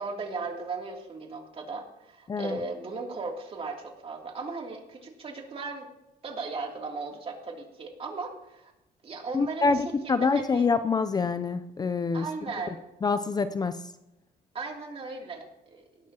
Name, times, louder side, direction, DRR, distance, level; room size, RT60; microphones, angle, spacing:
voice 1, 0.0-5.9 6.2-8.7 9.0-10.7 12.1-12.8 14.5-15.8, right 3 dB, 35° right, 1 dB, 2.9 m, -37 dB
voice 2, 9.3-12.3 13.0-13.8, left 4 dB, 25° left, 11 dB, 0.5 m, -26 dB
18.0 x 12.0 x 2.9 m, 0.91 s
cardioid pair, 110°, 17 cm